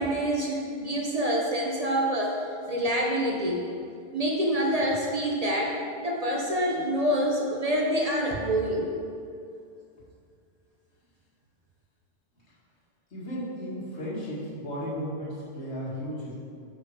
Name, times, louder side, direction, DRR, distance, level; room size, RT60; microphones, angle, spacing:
voice 1, 0.0-2.4 2.7-3.6 4.1-5.8 6.0-8.9, equal, 40° right, -1 dB, 0.8 m, -26 dB
voice 2, 13.1-16.4, equal, 80° left, -8 dB, 2.4 m, -34 dB
6.3 x 5.5 x 4.9 m, 2.4 s
omnidirectional pair, 1.1 m